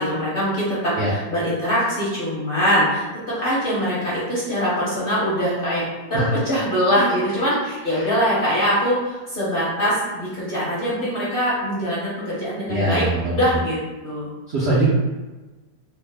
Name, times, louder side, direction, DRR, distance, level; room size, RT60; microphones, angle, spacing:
voice 1, 0.0-3.0 3.4-13.0 13.3-13.8 14.0-14.3, equal, 45° left, -8 dB, 0.8 m, -22 dB
voice 2, 12.7-13.3 14.5-14.9, right 1 dB, 75° right, -7 dB, 0.6 m, -22 dB
3.1 x 2.1 x 3.3 m, 1.2 s
omnidirectional pair, 1.9 m